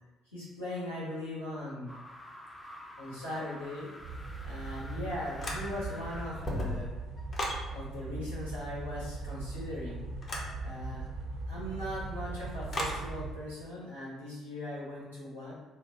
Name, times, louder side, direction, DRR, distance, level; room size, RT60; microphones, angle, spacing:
voice 1, 0.3-1.9 3.0-3.9 4.4-6.9 7.7-10.1 10.6-11.0 11.5-15.5, left 1 dB, 90° left, -11 dB, 1.4 m, -39 dB
sound 1, 1.9-6.4, left 1 dB, 15° left, 0.6 m, -49 dB
sound 2, 4.0-13.4, right 3 dB, 50° right, 0.5 m, -40 dB
sound 3, 5.4-6.0 6.3-7.6 10.2-10.5 12.7-13.0, left 1 dB, 40° left, 0.9 m, -35 dB
3.9 x 2.3 x 4.0 m, 1.2 s
figure-of-eight pair, 50°, 0 cm